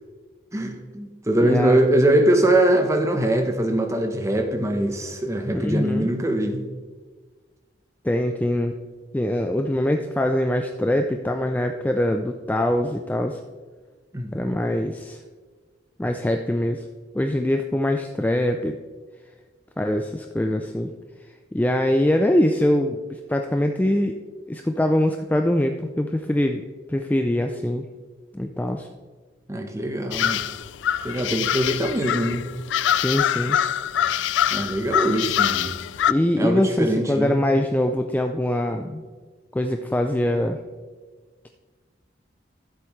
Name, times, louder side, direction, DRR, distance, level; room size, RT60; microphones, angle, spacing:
voice 1, 0.5-6.6 14.1-14.3 29.5-30.4 31.0-32.4 34.5-35.7 36.4-37.4, right 1 dB, 15° right, 5 dB, 0.9 m, -22 dB
voice 2, 1.4-1.8 5.5-6.1 8.0-8.8 9.1-13.4 14.3-15.2 16.0-16.8 17.1-18.8 19.8-20.9 21.5-24.2 24.5-27.9 28.3-28.9 32.9-33.6 36.1-39.0 39.5-40.6, left 1 dB, 10° left, 4 dB, 0.3 m, -23 dB
sound 1, 30.1-36.1, left 10 dB, 85° left, 0.3 m, -24 dB
13.0 x 7.7 x 3.1 m, 1.4 s
head